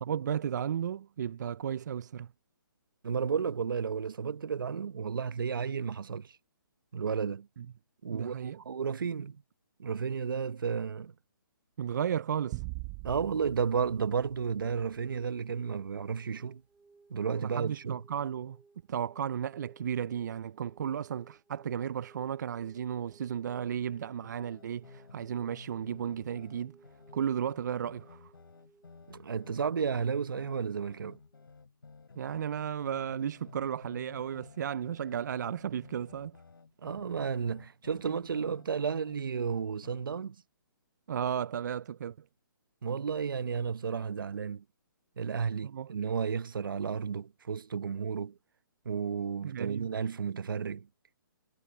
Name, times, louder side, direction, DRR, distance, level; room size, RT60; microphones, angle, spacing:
voice 1, 0.0-2.3 7.6-7.7 8.1-8.6 11.8-12.6 17.4-18.6 18.9-26.8 27.1-28.3 32.2-36.4 41.1-42.2 45.6-45.9 49.4-49.9, right 8 dB, 55° right, 0.6 m, -34 dB
voice 2, 3.0-6.4 6.9-7.5 8.0-9.4 9.8-11.1 13.0-16.6 17.1-18.0 29.1-31.2 36.8-40.3 42.8-44.6 45.2-48.3 48.8-50.9, right 6 dB, 70° right, 1.0 m, -32 dB
sound 1, 12.5-15.0, right 24 dB, 25° right, 1.2 m, -42 dB
sound 2, 16.0-31.4, right 4 dB, 5° right, 3.7 m, -62 dB
sound 3, 24.2-40.0, left 4 dB, 85° left, 4.7 m, -54 dB
hypercardioid pair, 150°, 12 cm